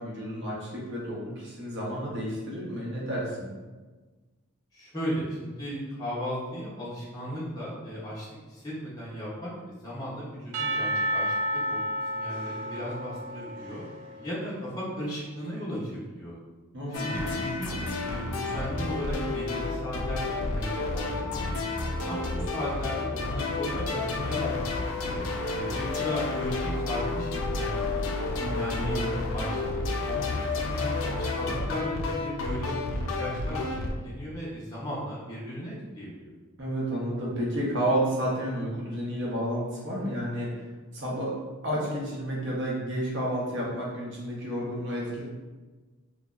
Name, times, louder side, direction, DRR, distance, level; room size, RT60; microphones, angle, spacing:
voice 1, 0.0-3.5 16.7-17.1 28.4-29.2 36.6-40.5 40.9-41.3 41.6-45.2, equal, 50° right, -4 dB, 0.7 m, -31 dB
voice 2, 4.7-9.5 9.8-11.8 12.1-13.8 14.1-16.3 17.0-17.7 18.0-21.7 22.1-25.3 25.6-28.1 28.5-29.0 29.3-30.2 30.5-36.3, equal, 15° left, -8 dB, 0.6 m, -36 dB
Percussion / Church bell, 10.5-14.7, equal, 80° right, 0.4 m, -31 dB
sound 1, 16.9-33.9, left 3 dB, 60° left, 0.3 m, -30 dB
2.8 x 2.1 x 2.3 m, 1.3 s
head